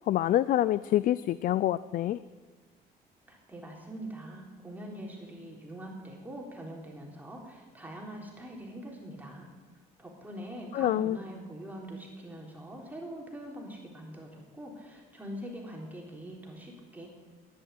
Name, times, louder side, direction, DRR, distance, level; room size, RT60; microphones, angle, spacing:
voice 1, 0.1-2.2 10.7-11.2, left 13 dB, 55° left, 17 dB, 0.4 m, -26 dB
voice 2, 3.3-9.5 10.0-17.1, right 1 dB, 10° right, -1 dB, 3.9 m, -43 dB
11.0 x 11.0 x 9.3 m, 1.4 s
cardioid pair, 110°, 17 cm